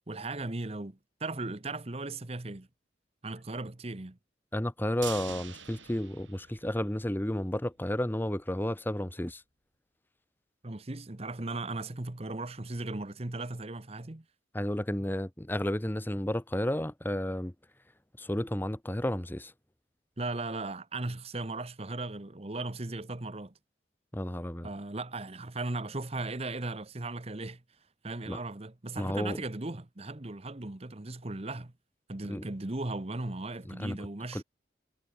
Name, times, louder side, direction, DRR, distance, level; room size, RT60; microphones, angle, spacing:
voice 1, 0.1-2.7 3.2-4.2 10.6-14.2 20.2-23.5 24.6-27.6 28.0-31.7 32.1-34.4, right 2 dB, 35° right, 1.0 m, -37 dB
voice 2, 4.5-9.4 14.5-17.5 18.2-19.5 24.1-24.7 28.3-28.4 29.0-29.4 32.2-32.5 33.7-34.0 34.3-34.4, left 1 dB, 10° left, 1.0 m, -32 dB
sound 1, 5.0-7.2 7.5-7.6 7.9-8.0, right 9 dB, 85° right, 5.7 m, -44 dB
head